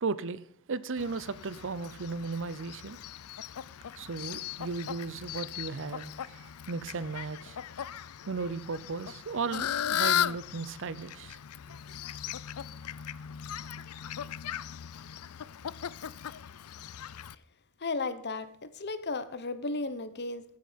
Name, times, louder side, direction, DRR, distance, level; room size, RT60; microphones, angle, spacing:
voice 1, 0.0-3.0 3.9-7.6 8.3-11.4, right 4 dB, 60° right, 0.7 m, -36 dB
Fowl, 1.0-17.3, left 10 dB, 80° left, 0.5 m, -37 dB
voice 2, 17.8-20.4, left 3 dB, 50° left, 1.1 m, -34 dB
15.0 x 7.9 x 5.2 m
head